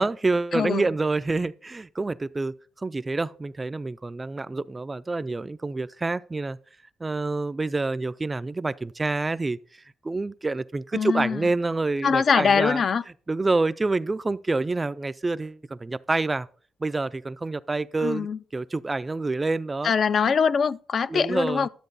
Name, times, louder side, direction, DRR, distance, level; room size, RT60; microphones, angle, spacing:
voice 1, 0.0-2.5 2.8-6.6 7.0-9.6 10.0-12.8 13.3-16.5 16.8-18.3 18.5-19.9 20.2-20.3 21.1-21.7, right 3 dB, 20° right, 0.3 m, -27 dB
voice 2, 0.5-0.8 10.9-11.5 12.0-13.0 18.0-18.4 19.8-21.7, left 6 dB, 45° left, 0.4 m, -23 dB
12.0 x 7.7 x 4.0 m
cardioid pair, 115°, 0 cm